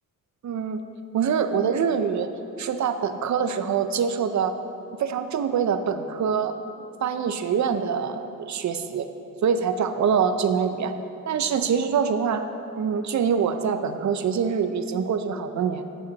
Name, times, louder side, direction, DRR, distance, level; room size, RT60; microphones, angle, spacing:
voice 1, 0.4-0.8 1.1-2.3 2.6-4.5 4.9-6.5 7.0-9.1 9.4-10.9 11.3-12.4 12.7-15.8, right 7 dB, 55° right, 9 dB, 0.6 m, -24 dB
12.0 x 8.1 x 4.0 m, 2.8 s
wide cardioid pair, 140°, 34 cm